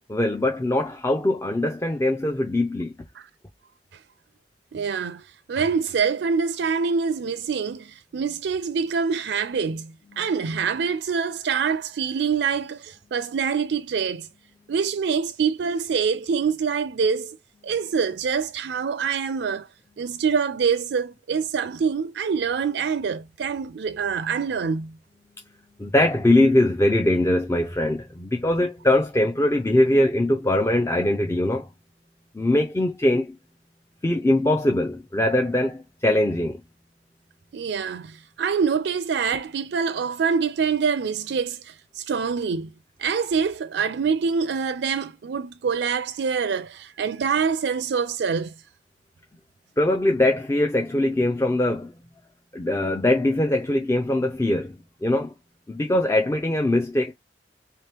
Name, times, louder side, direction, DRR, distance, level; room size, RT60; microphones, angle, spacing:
voice 1, 0.1-2.9 10.1-10.2 25.8-31.7 32.3-33.4 34.0-36.6 49.8-51.9 52.5-55.3 55.7-57.1, left 1 dB, 15° left, 0.4 m, -22 dB
voice 2, 4.7-5.2 5.5-14.3 14.7-17.4 17.6-19.7 20.0-25.0 37.5-42.7 43.0-48.5, right 6 dB, 65° right, 0.4 m, -25 dB
3.7 x 2.9 x 3.3 m
head